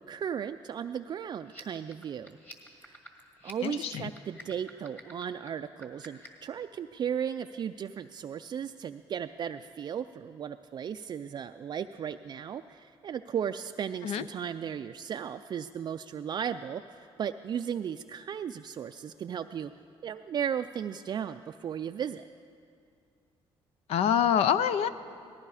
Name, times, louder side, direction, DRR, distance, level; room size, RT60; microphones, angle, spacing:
voice 1, 0.0-2.4 2.8-3.0 3.4-19.7 20.0-22.3, right 8 dB, 40° right, 8 dB, 0.3 m, -35 dB
sound 1, 1.4-6.5, left 1 dB, 15° left, 1.8 m, -49 dB
voice 2, 3.6-4.0 14.0-14.2 23.9-24.9, left 8 dB, 75° left, 14 dB, 0.5 m, -25 dB
18.5 x 14.5 x 4.9 m, 2.4 s
cardioid pair, 105°, 11 cm